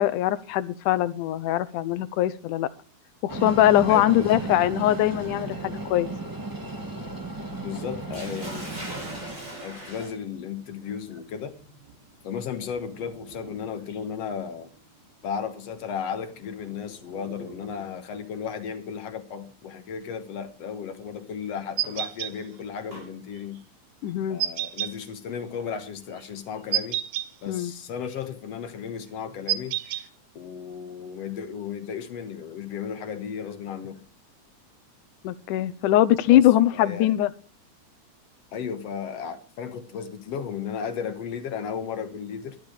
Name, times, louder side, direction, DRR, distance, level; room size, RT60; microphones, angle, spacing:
voice 1, 0.0-2.7 3.2-6.1 24.0-24.4 27.5-27.7 35.2-37.3, left 13 dB, 80° left, 2.3 m, -22 dB
Train, 3.3-9.4, right 2 dB, 10° right, 1.2 m, -35 dB
voice 2, 3.9-4.4 7.6-9.1 9.6-11.6 12.2-14.7 15.2-23.6 24.3-27.0 27.4-34.0 36.3-36.5 36.7-37.1 38.5-42.6, left 7 dB, 60° left, 2.1 m, -35 dB
Sink (filling or washing), 8.1-18.1 19.2-19.5 20.0-20.1 21.6-23.1, right 1 dB, 30° right, 7.1 m, -44 dB
sound 1, 21.8-22.3 24.4-24.9 26.7-27.3 29.5-30.0, right 12 dB, 70° right, 1.7 m, -27 dB
12.5 x 11.5 x 4.9 m
omnidirectional pair, 3.7 m